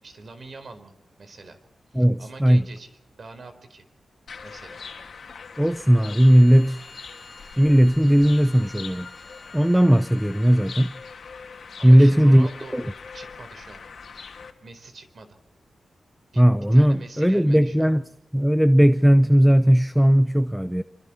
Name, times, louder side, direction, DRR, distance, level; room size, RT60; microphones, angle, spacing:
voice 1, 0.0-0.9 1.2-1.6 1.9-2.9 3.2-3.9 4.4-4.8 11.8-12.8 13.1-13.8 14.6-15.4 16.3-16.5 16.7-17.9, right 3 dB, 55° right, 4.1 m, -43 dB
voice 2, 1.9-2.6 5.6-6.8 7.6-9.1 9.5-10.9 11.8-12.8 16.4-18.0 18.3-20.8, equal, 5° right, 0.8 m, -17 dB
sound 1, 4.3-14.5, left 5 dB, 70° left, 2.8 m, -42 dB
Bowed string instrument, 5.8-11.2, left 2 dB, 20° left, 3.1 m, -49 dB
28.0 x 24.5 x 4.3 m
wide cardioid pair, 115°, 0 cm